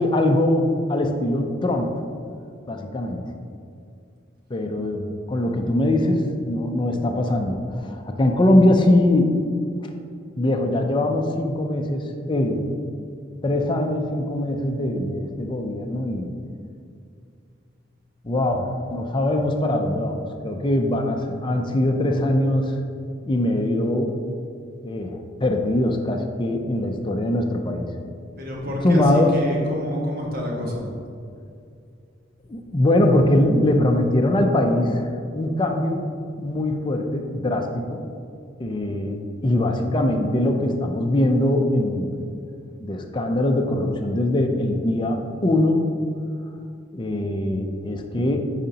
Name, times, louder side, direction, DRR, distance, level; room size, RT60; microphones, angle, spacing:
voice 1, 0.0-1.9 2.7-3.2 4.5-9.3 9.9-10.0 10.4-12.7 13.4-16.3 18.2-22.8 23.2-24.1 24.8-27.9 28.8-29.4 32.5-36.0 36.4-38.0 38.6-42.2 42.8-45.8 46.9-48.5, left 1 dB, 25° left, 3 dB, 0.5 m, -22 dB
voice 2, 28.4-30.9, left 1 dB, 50° right, -1 dB, 1.2 m, -29 dB
8.9 x 5.0 x 2.8 m, 2.3 s
head